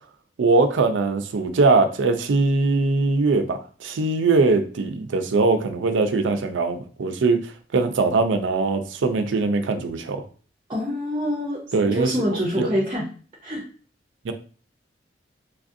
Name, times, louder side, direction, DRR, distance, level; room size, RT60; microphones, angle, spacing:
voice 1, 0.4-10.2 11.7-12.7 14.2-14.3, right 3 dB, 85° right, 7 dB, 0.4 m, -21 dB
voice 2, 10.7-13.1 13.4-13.7, equal, 25° right, -3 dB, 0.5 m, -26 dB
3.3 x 2.5 x 2.5 m, 0.41 s
head